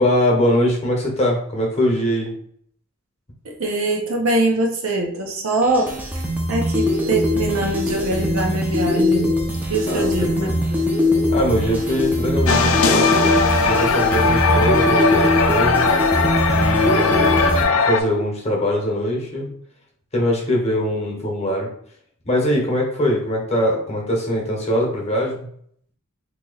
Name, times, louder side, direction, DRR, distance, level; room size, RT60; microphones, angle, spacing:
voice 1, 0.0-2.3 9.9-10.1 10.4-10.6 11.3-13.1 13.7-15.9 16.5-19.5 20.1-21.7 22.3-25.5, equal, 30° left, -1 dB, 1.0 m, -22 dB
voice 2, 3.4-5.9 6.5-9.4 9.7-10.5, right 2 dB, 70° right, 1 dB, 0.8 m, -22 dB
sound 1, 5.6-17.6, left 1 dB, 10° right, 0.6 m, -21 dB
sound 2, 12.5-18.0, left 3 dB, 70° left, 0.4 m, -18 dB
2.9 x 2.8 x 3.9 m, 0.64 s
head